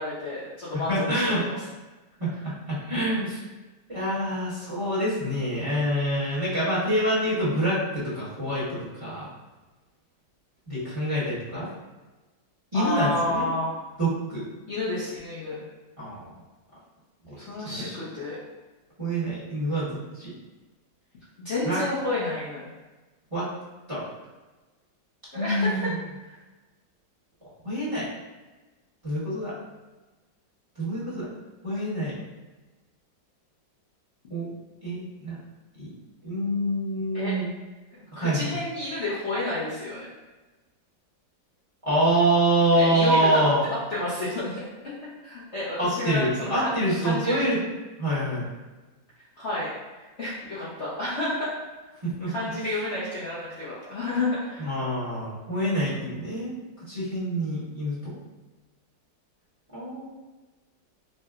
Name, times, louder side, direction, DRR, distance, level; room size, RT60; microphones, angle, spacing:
voice 1, 0.0-1.5 12.7-13.8 14.7-15.6 17.3-18.4 21.4-22.7 25.3-25.9 26.3-26.4 37.1-37.3 37.9-40.1 42.8-43.5 43.9-44.6 45.2-46.7 47.0-47.4 49.4-51.5 52.3-54.7, left 2 dB, 50° left, -9 dB, 0.8 m, -30 dB
voice 2, 0.9-1.4 2.2-3.4 3.9-9.3 10.7-11.7 12.7-13.5 14.0-14.4 16.0-16.3 17.2-17.9 19.0-20.3 21.6-21.8 23.3-23.5 23.9-24.0 25.3-25.8 27.6-28.1 29.0-29.5 30.8-31.3 31.6-32.2 34.3-34.5 34.8-35.4 35.7-35.9 36.2-37.5 38.2-38.5 41.8-43.6 45.8-47.6 48.0-48.5 52.0-52.3 54.6-56.5 56.9-58.2 59.7-60.1, right 1 dB, 20° right, -11 dB, 1.2 m, -26 dB
5.6 x 2.2 x 2.4 m, 1.2 s
omnidirectional pair, 2.0 m